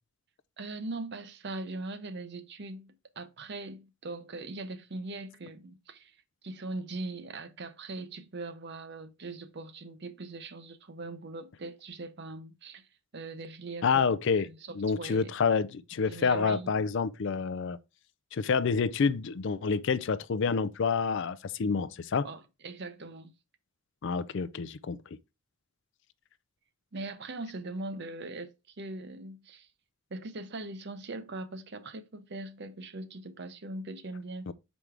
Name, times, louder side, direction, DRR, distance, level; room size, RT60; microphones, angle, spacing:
voice 1, 0.6-6.2 6.4-12.9 13.1-15.3 16.0-16.8 22.2-23.3 26.9-29.7 30.1-34.5, right 2 dB, 50° right, 0.7 m, -41 dB
voice 2, 13.8-14.5 14.8-17.8 18.3-22.3 24.0-25.0 34.5-34.6, left 5 dB, 55° left, 0.4 m, -28 dB
6.1 x 5.1 x 3.3 m
head